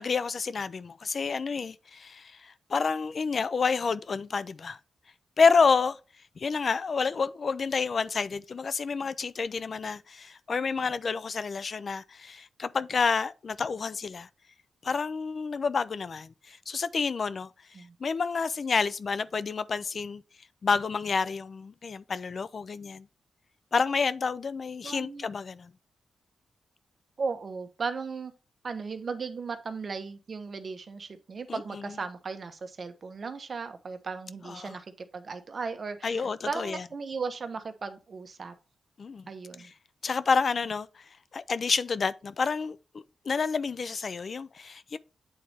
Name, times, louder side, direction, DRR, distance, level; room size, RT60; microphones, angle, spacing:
voice 1, 0.0-4.8 5.4-6.0 6.4-14.3 14.8-17.5 18.0-20.2 20.6-23.1 23.7-25.7 31.5-31.9 34.5-34.7 36.0-36.8 39.0-39.3 39.6-39.7 40.0-41.0 41.3-45.0, left 5 dB, 55° left, 0.4 m, -29 dB
voice 2, 24.8-25.3 27.2-28.3 28.6-34.9 35.1-38.5 39.3-39.7, right 4 dB, 50° right, 1.0 m, -36 dB
8.5 x 4.1 x 3.4 m
cardioid pair, 65°, 0 cm